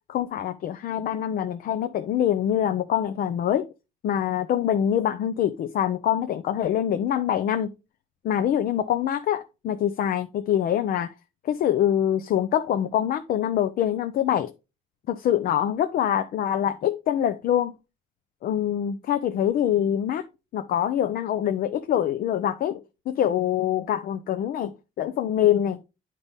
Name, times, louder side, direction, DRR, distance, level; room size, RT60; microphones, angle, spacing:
voice 1, 0.1-3.7 4.0-7.7 8.2-11.1 11.4-14.5 15.1-17.7 18.4-20.3 20.5-22.8 23.1-25.8, left 10 dB, 60° left, 0.7 m, -24 dB
9.8 x 4.1 x 3.5 m
cardioid pair, 110°, 17 cm